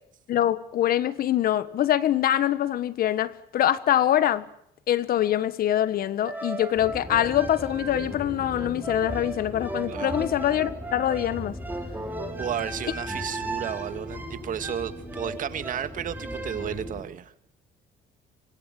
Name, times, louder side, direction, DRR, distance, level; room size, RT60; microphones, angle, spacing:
voice 1, 0.3-4.4 4.9-11.5, left 12 dB, 60° left, 1.5 m, -24 dB
sound 1, 6.3-16.9, right 2 dB, 10° right, 4.7 m, -37 dB
sound 2, 6.7-17.0, equal, 5° left, 5.4 m, -39 dB
voice 2, 12.4-17.3, right 9 dB, 50° right, 2.0 m, -33 dB
25.5 x 25.0 x 7.7 m
cardioid pair, 110°, 17 cm